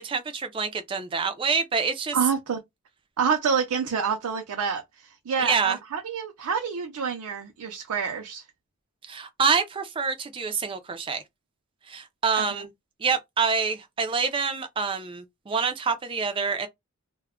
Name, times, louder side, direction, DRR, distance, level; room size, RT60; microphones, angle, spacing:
voice 1, 0.0-2.2 5.4-5.8 9.1-11.2 11.9-12.7 13.0-16.7, right 5 dB, 25° right, 0.3 m, -26 dB
voice 2, 2.1-2.6 3.2-8.4 12.4-12.6, right 6 dB, 80° right, 0.5 m, -28 dB
2.2 x 2.0 x 3.5 m
head